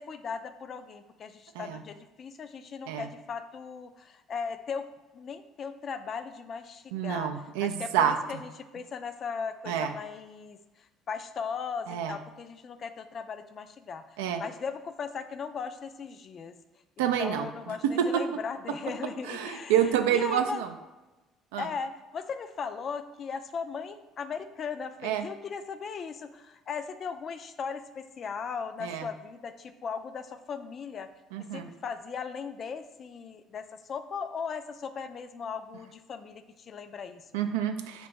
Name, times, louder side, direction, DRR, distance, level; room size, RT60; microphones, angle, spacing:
voice 1, 0.0-4.8 5.1-7.3 7.6-16.6 17.0-19.8 20.1-20.6 21.6-31.1 31.5-37.3, left 6 dB, 50° left, 10 dB, 0.3 m, -38 dB
voice 2, 6.9-8.4 9.7-9.9 11.9-12.2 14.2-14.4 17.0-17.5 18.0-18.1 19.3-20.7 21.5-21.7 25.0-25.3 28.8-29.1 31.3-31.7 37.3-38.1, right 9 dB, 85° right, 7 dB, 0.3 m, -28 dB
2.9 x 2.6 x 4.4 m, 1.1 s
supercardioid pair, 70°, 0 cm